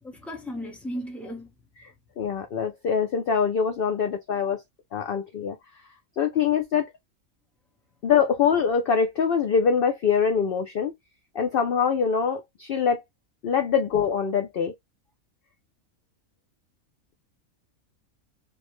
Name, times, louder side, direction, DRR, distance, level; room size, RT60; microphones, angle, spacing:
voice 1, 0.0-1.5, equal, ahead, 0.7 m, -35 dB
voice 2, 2.2-4.6 4.9-5.6 6.2-6.9 8.0-10.9 11.3-13.0 13.4-14.7, left 6 dB, 65° left, 0.5 m, -24 dB
3.1 x 2.1 x 3.0 m
omnidirectional pair, 1.4 m